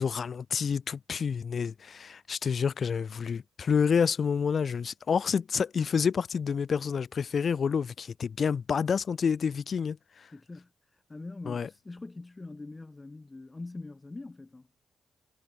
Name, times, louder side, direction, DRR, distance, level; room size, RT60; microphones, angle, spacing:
voice 1, 0.0-10.3 11.5-11.7, left 6 dB, 55° left, 0.4 m, -28 dB
voice 2, 10.3-14.7, left 2 dB, 25° left, 0.9 m, -43 dB
supercardioid pair, 60°, 0 cm